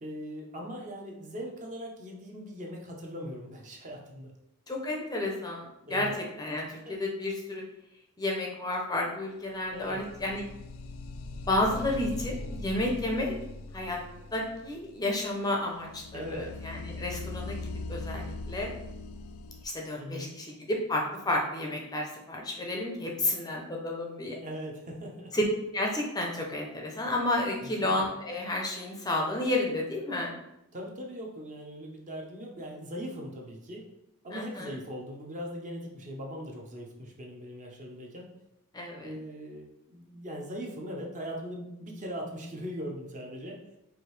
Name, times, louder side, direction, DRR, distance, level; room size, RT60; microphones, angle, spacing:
voice 1, 0.0-4.3 5.9-6.2 6.5-6.9 9.7-10.0 16.1-16.5 20.0-20.4 24.4-25.3 27.6-27.9 30.7-33.8 34.2-38.3 39.0-43.6, equal, 35° right, 0 dB, 0.7 m, -40 dB
voice 2, 4.7-6.1 6.4-7.6 8.2-10.5 11.5-13.3 13.7-14.0 14.3-17.6 17.9-18.7 19.6-24.4 25.3-25.4 25.7-30.3 34.3-34.7 38.7-39.1, left 1 dB, 20° left, 0 dB, 0.5 m, -31 dB
sound 1, 9.5-19.6, left 2 dB, 70° left, 0.3 m, -41 dB
4.8 x 2.6 x 3.1 m, 0.86 s
head